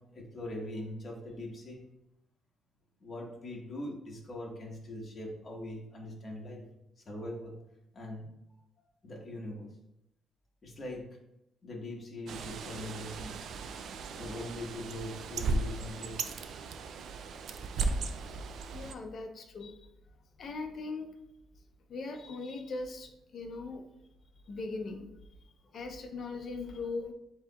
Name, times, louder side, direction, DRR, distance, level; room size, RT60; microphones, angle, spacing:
voice 1, 0.1-1.8 3.0-6.6 7.0-7.6 7.9-8.3 9.0-9.7 10.6-11.0 11.6-13.4 14.1-16.1 16.4-16.7 25.7-25.8, left 1 dB, 30° left, -2 dB, 1.3 m, -41 dB
Bird, 12.3-18.9, right 3 dB, 60° right, 0.4 m, -36 dB
voice 2, 18.7-19.9 20.4-21.1 21.9-23.8 24.5-25.1 25.7-27.1, left 3 dB, 45° left, 5 dB, 0.6 m, -39 dB
8.1 x 2.9 x 2.3 m, 0.84 s
cardioid pair, 135°, 0 cm